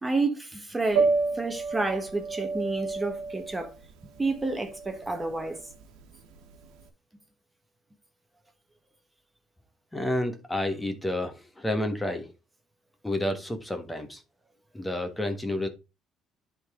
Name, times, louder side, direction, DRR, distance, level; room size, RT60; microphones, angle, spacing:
voice 1, 0.0-3.7 4.2-5.6, right 3 dB, 15° right, 1.3 m, -30 dB
Piano, 0.9-6.8, right 4 dB, 85° right, 1.4 m, -30 dB
voice 2, 9.9-12.3 13.0-14.2 14.7-15.7, left 1 dB, 10° left, 1.4 m, -30 dB
10.5 x 4.0 x 3.6 m
cardioid pair, 95°, 0 cm